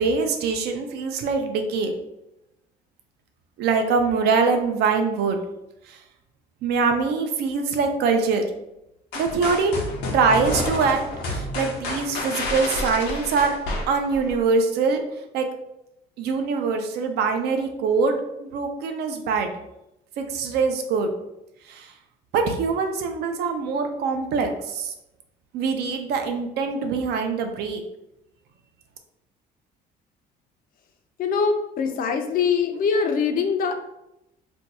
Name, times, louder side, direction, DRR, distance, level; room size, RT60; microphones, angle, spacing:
voice 1, 0.0-1.9 3.6-5.4 5.9-6.0 6.6-8.4 9.1-9.7 10.1-13.5 13.9-15.0 15.3-15.4 16.2-19.5 20.2-21.1 21.7-21.9 22.3-24.9 25.5-27.8, right 4 dB, 75° right, 5 dB, 0.5 m, -23 dB
sound 1, 9.1-14.4, left 2 dB, 80° left, 0.8 m, -29 dB
voice 2, 31.2-33.7, left 5 dB, 55° left, 6 dB, 0.5 m, -23 dB
2.6 x 2.2 x 4.0 m, 0.88 s
cardioid pair, 110°, 17 cm